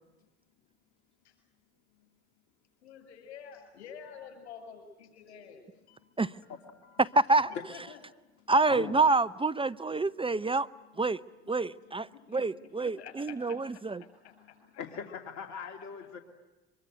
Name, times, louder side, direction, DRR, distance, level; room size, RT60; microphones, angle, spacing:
voice 1, 2.8-5.6 5.9-6.0 6.4-8.0 12.1-12.4 12.8-14.8, left 7 dB, 85° left, 6.9 m, -49 dB
voice 2, 7.0-7.5 8.5-10.7 11.0-11.2 11.5-14.0, right 3 dB, 15° right, 0.8 m, -27 dB
voice 3, 9.9-11.2 11.5-12.5 14.4-14.5 14.8-16.2, left 7 dB, 60° left, 3.0 m, -43 dB
24.5 x 23.0 x 9.1 m
hypercardioid pair, 65°, 32 cm